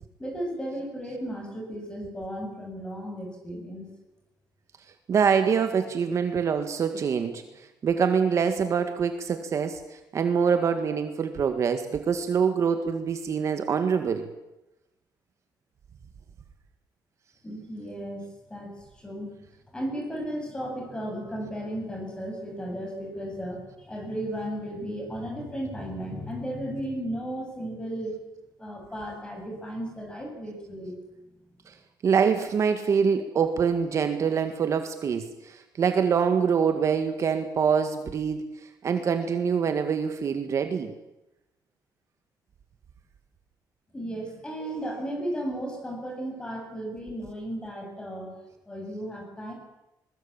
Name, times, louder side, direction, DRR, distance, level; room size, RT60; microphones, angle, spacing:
voice 1, 0.2-3.9 17.4-18.2 18.5-19.3 19.7-28.2 28.6-31.0 43.9-48.3 48.7-49.5, right 1 dB, 10° left, 2 dB, 7.6 m, -35 dB
voice 2, 5.1-7.4 7.8-14.3 31.7-31.8 32.0-38.4 38.8-40.9, right 6 dB, 45° right, 7 dB, 1.7 m, -25 dB
21.5 x 21.0 x 8.8 m, 0.96 s
cardioid pair, 170°, 7 cm